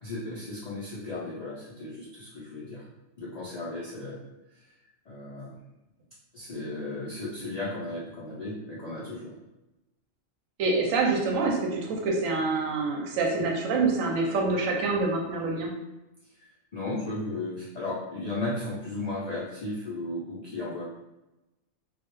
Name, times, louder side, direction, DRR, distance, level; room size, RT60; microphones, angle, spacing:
voice 1, 0.0-2.8 3.2-4.2 5.1-5.6 6.3-9.3 16.4-16.5 16.7-20.8, left 2 dB, 85° left, -7 dB, 0.3 m, -35 dB
voice 2, 10.6-15.7, right 3 dB, 85° right, 0 dB, 1.0 m, -26 dB
2.3 x 2.0 x 2.9 m, 1.0 s
omnidirectional pair, 1.3 m